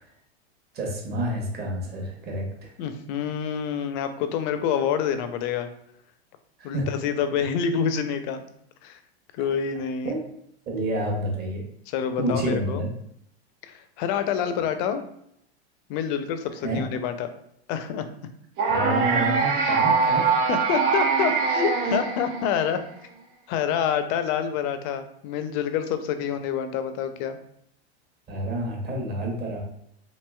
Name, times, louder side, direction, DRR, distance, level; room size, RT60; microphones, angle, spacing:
voice 1, 0.7-2.7 6.6-6.9 10.0-10.2 10.7-11.6 12.2-12.9 16.6-16.8 18.7-20.5 28.3-29.6, right 1 dB, 30° right, 0 dB, 0.9 m, -29 dB
voice 2, 2.8-5.7 6.6-8.4 8.8-9.0 9.3-10.1 11.9-12.8 13.6-15.0 15.9-17.3 17.7-18.0 20.5-22.8 23.5-27.4, left 8 dB, 50° left, 9 dB, 0.4 m, -27 dB
sound 1, 18.6-22.8, right 5 dB, 60° right, 0.8 m, -23 dB
3.0 x 2.7 x 2.2 m, 0.73 s
hypercardioid pair, 110°, 32 cm